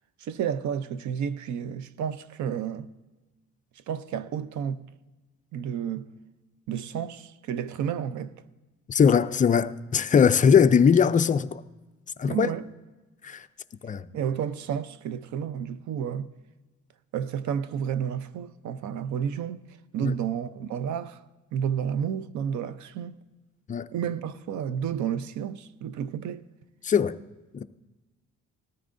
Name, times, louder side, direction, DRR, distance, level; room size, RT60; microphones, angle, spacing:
voice 1, 0.2-2.9 3.7-4.9 5.5-6.1 6.7-8.3 12.3-12.7 14.1-16.3 17.1-21.2 21.5-23.2 23.9-26.5, right 8 dB, 75° right, 0.6 m, -31 dB
voice 2, 8.9-11.6 12.2-12.5 13.2-13.5 13.8-14.1 20.0-20.1 23.7-23.9 26.8-27.2 27.5-27.6, left 7 dB, 25° left, 0.4 m, -20 dB
19.5 x 13.5 x 2.6 m
cardioid pair, 135°, 30 cm